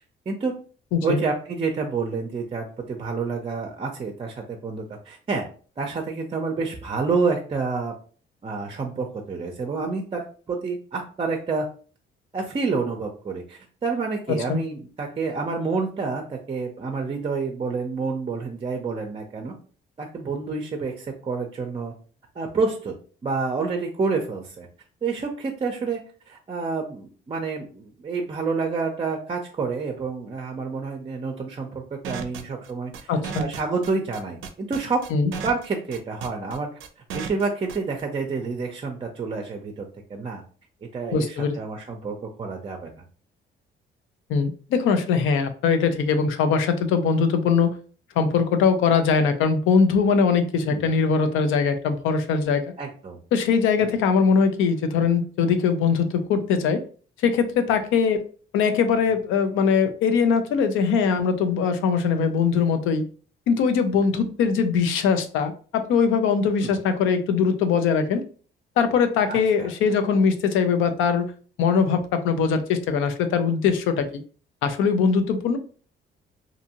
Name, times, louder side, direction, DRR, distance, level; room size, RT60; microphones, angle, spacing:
voice 1, 1.0-5.4 5.8-7.9 8.4-11.7 12.3-19.5 20.0-21.9 22.4-22.9 23.2-24.7 25.0-26.0 26.3-33.1 33.4-35.0 35.4-36.7 37.1-40.4 40.9-42.9 50.6-50.9 52.8-53.2 66.6-66.8 69.3-69.7, right 4 dB, 30° right, 3 dB, 0.5 m, -28 dB
sound 1, 32.0-38.0, right 6 dB, 80° right, 0.4 m, -34 dB
voice 2, 33.1-33.4 35.1-35.3 41.1-41.6 44.3-47.7 48.2-52.6 53.3-56.8 57.2-58.2 58.5-63.0 63.5-68.2 68.8-71.3 71.6-74.1 74.6-75.6, left 5 dB, 90° left, 9 dB, 0.5 m, -21 dB
2.6 x 2.5 x 2.8 m, 0.41 s
cardioid pair, 90°, 20 cm